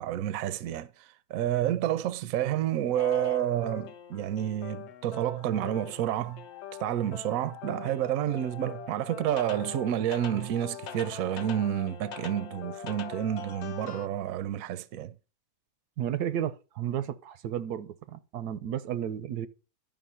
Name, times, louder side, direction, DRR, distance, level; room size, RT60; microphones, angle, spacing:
voice 1, 0.0-6.4 6.8-15.1, right 11 dB, 70° right, 1.0 m, -29 dB
sound 1, 2.9-14.1, left 7 dB, 60° left, 0.7 m, -42 dB
voice 2, 16.0-19.5, right 10 dB, 85° right, 1.3 m, -33 dB
11.5 x 5.6 x 5.5 m
omnidirectional pair, 1.6 m